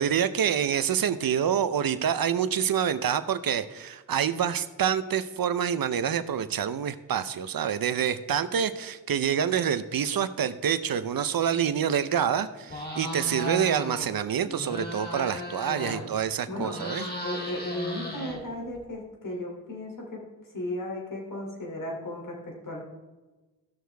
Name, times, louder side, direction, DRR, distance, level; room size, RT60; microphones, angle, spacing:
voice 1, 0.0-17.1, right 8 dB, 70° right, 12 dB, 0.7 m, -27 dB
sound 1, 12.7-14.1 14.4-16.2 16.5-18.8, left 1 dB, 25° left, 2.7 m, -36 dB
voice 2, 15.7-16.1 16.5-16.7 17.2-20.2 20.5-22.8, left 1 dB, 60° left, -1 dB, 2.9 m, -35 dB
16.0 x 6.4 x 3.4 m, 1.2 s
cardioid pair, 65°, 37 cm